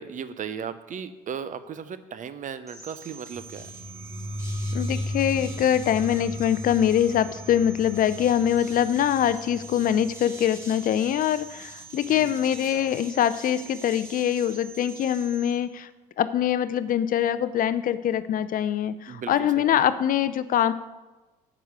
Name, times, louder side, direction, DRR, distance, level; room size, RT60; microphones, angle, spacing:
voice 1, 0.0-3.7 12.1-12.9 19.1-19.8, right 7 dB, 40° right, 12 dB, 0.7 m, -37 dB
sound 1, 2.7-15.5, right 4 dB, 15° right, 3.2 m, -44 dB
sound 2, 3.3-13.1, left 1 dB, 75° right, 2.8 m, -37 dB
voice 2, 4.7-15.9 16.2-20.7, left 10 dB, 45° left, 14 dB, 0.6 m, -24 dB
9.3 x 6.1 x 6.6 m, 1.1 s
figure-of-eight pair, 55°, 21 cm